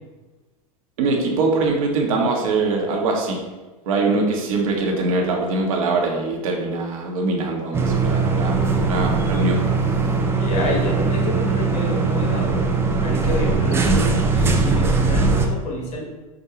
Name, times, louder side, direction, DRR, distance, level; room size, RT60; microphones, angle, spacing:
voice 1, 1.0-3.4 3.9-9.6, right 3 dB, 65° right, 0 dB, 0.9 m, -22 dB
sound 1, 7.7-15.5, right 4 dB, 15° right, 0.4 m, -20 dB
voice 2, 10.4-12.7 13.0-16.0, left 1 dB, 35° left, -1 dB, 1.2 m, -28 dB
4.8 x 2.2 x 2.9 m, 1.2 s
hypercardioid pair, 100°, 19 cm